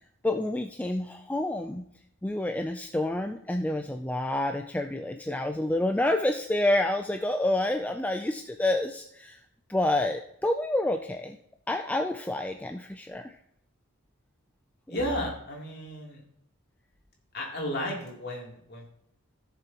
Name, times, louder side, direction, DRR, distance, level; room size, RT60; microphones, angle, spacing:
voice 1, 0.2-1.8 2.2-9.4 9.7-11.4 11.7-13.2, left 1 dB, 5° left, 5 dB, 0.3 m, -28 dB
voice 2, 14.9-16.2 17.3-18.8, equal, 45° left, -2 dB, 3.0 m, -33 dB
16.0 x 6.9 x 2.9 m, 0.74 s
head